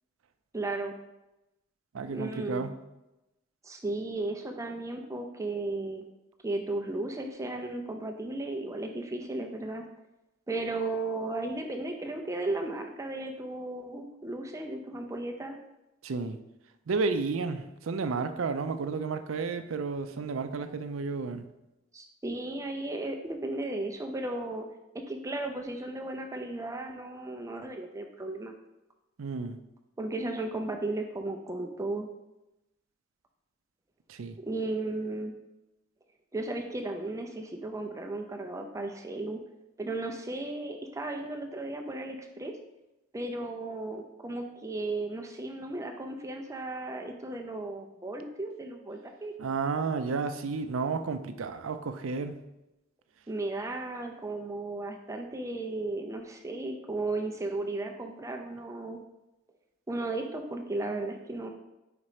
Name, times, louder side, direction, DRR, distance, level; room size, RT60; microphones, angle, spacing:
voice 1, 0.5-0.9 2.1-2.7 3.6-6.0 6.4-9.8 10.5-15.6 21.9-24.7 25.1-28.5 30.0-32.1 34.4-35.3 36.3-39.4 39.8-42.5 43.1-49.3 53.3-59.0 59.9-61.5, right 2 dB, 15° right, 3 dB, 0.5 m, -35 dB
voice 2, 1.9-2.7 16.0-16.4 16.9-21.4 29.2-29.6 34.1-34.4 49.4-52.4, right 4 dB, 80° right, 9 dB, 0.5 m, -32 dB
5.1 x 4.3 x 4.8 m, 0.95 s
head